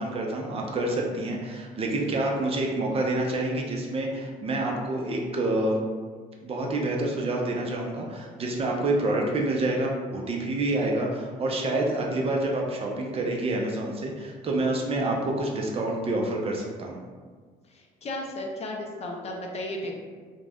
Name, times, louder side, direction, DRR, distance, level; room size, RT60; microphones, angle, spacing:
voice 1, 0.0-5.8 6.4-17.0, right 2 dB, 35° right, 0 dB, 0.5 m, -27 dB
voice 2, 17.7-20.0, left 1 dB, 40° left, 1 dB, 0.4 m, -34 dB
2.4 x 2.1 x 3.4 m, 1.5 s
cardioid pair, 110°, 17 cm